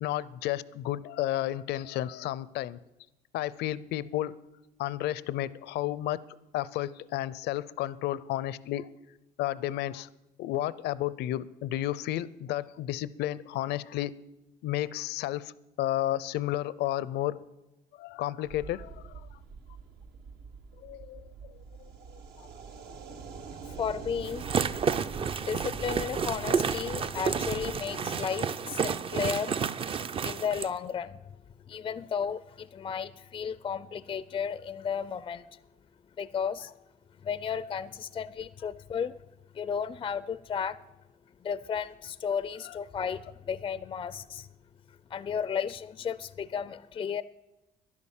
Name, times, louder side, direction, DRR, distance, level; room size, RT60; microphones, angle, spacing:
voice 1, 0.0-2.8 3.3-4.3 4.8-6.2 6.5-8.9 9.4-10.1 10.4-14.1 14.6-15.5 15.8-17.4 18.0-19.4 20.8-21.5 22.4-22.5 22.9-23.0 42.6-42.8, left 14 dB, 80° left, 19 dB, 0.5 m, -32 dB
sound 1, 18.5-27.8, right 5 dB, 70° right, 1.3 m, -45 dB
voice 2, 23.8-24.4 25.4-29.6 30.2-31.2 31.7-35.4 36.2-36.7 37.2-39.2 39.5-40.8 41.4-44.5 45.1-47.2, left 7 dB, 30° left, 16 dB, 0.4 m, -33 dB
sound 2, 24.2-30.7, right 6 dB, 35° right, 0.5 m, -31 dB
11.0 x 11.0 x 7.2 m, 0.98 s
cardioid pair, 110°, 17 cm